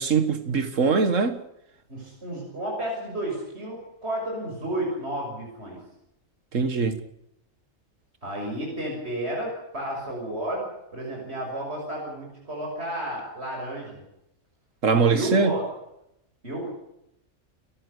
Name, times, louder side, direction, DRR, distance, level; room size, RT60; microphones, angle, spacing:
voice 1, 0.0-1.4 6.5-7.0 14.8-15.5, right 5 dB, 70° right, 2.1 m, -22 dB
voice 2, 1.9-5.8 8.2-10.6 10.9-14.0 15.1-15.6 16.4-16.7, right 1 dB, 55° right, 6.7 m, -32 dB
30.0 x 14.0 x 8.2 m
omnidirectional pair, 1.3 m